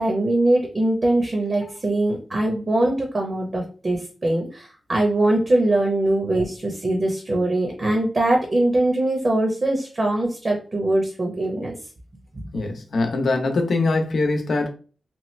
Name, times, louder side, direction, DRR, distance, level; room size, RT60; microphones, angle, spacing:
voice 1, 0.0-11.7, right 1 dB, 40° right, 0.8 m, -22 dB
voice 2, 12.5-14.7, left 3 dB, 75° left, 0.7 m, -22 dB
3.0 x 2.4 x 3.1 m
wide cardioid pair, 90°, 0 cm